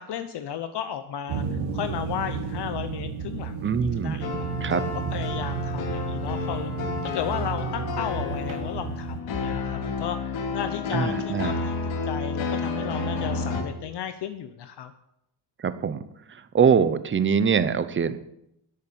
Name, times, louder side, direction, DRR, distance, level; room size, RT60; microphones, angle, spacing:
voice 1, 0.0-1.4 1.7-4.5 5.1-6.7 7.0-11.7 12.0-14.9, left 9 dB, 60° left, 10 dB, 1.0 m, -34 dB
sound 1, 1.3-9.2, right 6 dB, 70° right, 2.4 m, -32 dB
voice 2, 3.6-4.3 4.6-4.8 10.9-11.6 15.6-18.2, right 6 dB, 25° right, 13 dB, 0.7 m, -23 dB
sound 2, 4.2-13.6, left 4 dB, 75° left, 2.8 m, -31 dB
12.0 x 8.5 x 10.0 m, 0.82 s
cardioid pair, 160°, 47 cm